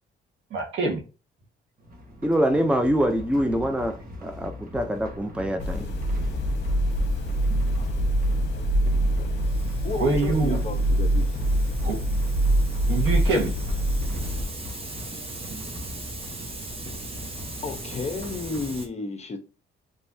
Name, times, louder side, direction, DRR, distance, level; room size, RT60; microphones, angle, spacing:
voice 1, 0.5-1.0 9.9-10.8 11.8-12.0 12.9-13.6, right 3 dB, 75° right, 1.7 m, -25 dB
sound 1, 1.8-18.8, left 1 dB, 45° right, 1.5 m, -40 dB
voice 2, 2.2-5.9, equal, 5° right, 0.7 m, -25 dB
sound 2, 5.6-14.4, right 1 dB, 60° left, 1.0 m, -24 dB
Hiss, 6.9-18.9, right 2 dB, 30° right, 1.1 m, -41 dB
voice 3, 9.8-11.3 17.6-19.4, left 4 dB, 35° left, 1.0 m, -33 dB
5.4 x 3.2 x 2.8 m
cardioid pair, 90°, 20 cm